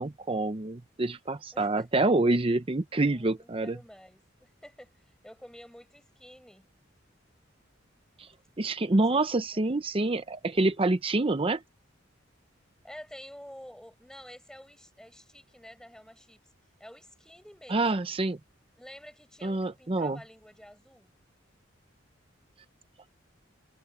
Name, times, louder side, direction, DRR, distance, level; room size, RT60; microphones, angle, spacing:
voice 1, 0.0-3.8 8.2-8.3 8.6-11.6 17.7-18.4 19.4-20.2, right 2 dB, 30° right, 0.7 m, -27 dB
voice 2, 1.5-2.0 3.0-6.7 8.2-8.3 8.9-9.7 12.8-16.4 16.8-18.1 18.8-21.1, equal, 5° left, 7.4 m, -50 dB
head